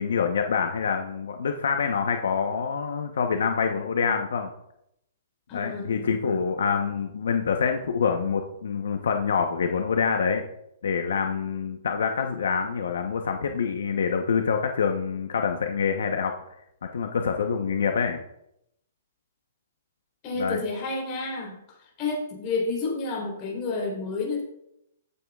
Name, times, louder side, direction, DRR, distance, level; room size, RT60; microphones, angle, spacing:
voice 1, 0.0-4.5 5.5-10.4 10.8-16.3 16.9-18.2 20.4-20.6, left 6 dB, 80° left, 5 dB, 1.0 m, -26 dB
voice 2, 5.5-6.3 20.2-21.6 22.0-24.4, left 3 dB, 25° left, -2 dB, 3.7 m, -30 dB
15.5 x 8.5 x 2.4 m, 0.79 s
hypercardioid pair, 170°, 0 cm